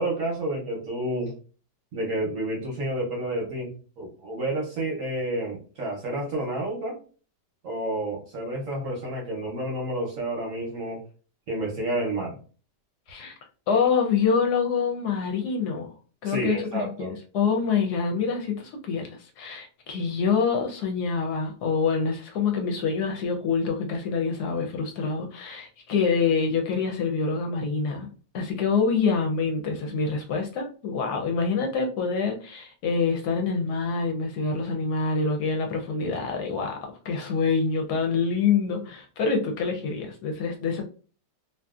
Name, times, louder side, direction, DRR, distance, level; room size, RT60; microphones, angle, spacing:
voice 1, 0.0-1.3 1.9-3.7 4.0-7.0 7.6-11.0 11.5-12.4 16.2-17.1, right 1 dB, 60° right, 0.9 m, -30 dB
voice 2, 13.7-15.9 16.2-16.7 17.0-28.1 28.3-40.8, left 5 dB, 70° left, 1.0 m, -26 dB
2.7 x 2.6 x 2.3 m
omnidirectional pair, 1.9 m